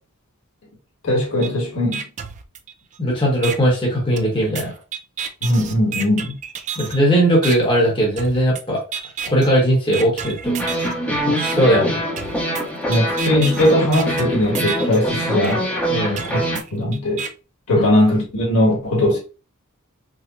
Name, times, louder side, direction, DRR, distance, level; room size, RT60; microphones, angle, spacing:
voice 1, 1.0-2.0 5.4-6.4 12.9-15.6 16.3-16.4 16.7-17.2 17.7-19.2, left 1 dB, 75° left, 1.8 m, -19 dB
sound 1, 1.4-1.5 1.9-3.0 3.4-3.6 4.2-7.0 7.4-7.6 8.2-8.6 8.9-9.5 9.9-10.9 11.4-11.5 12.2-15.0 15.4-15.5 16.2-17.3, right 7 dB, 35° right, 0.3 m, -31 dB
voice 2, 3.0-4.7 6.8-8.8 9.2-10.5 11.2-12.0 15.9-16.2 17.7-17.9, right 1 dB, 25° left, 1.0 m, -18 dB
sound 2, 10.4-16.6, equal, 5° left, 0.7 m, -23 dB
4.8 x 2.0 x 2.6 m
head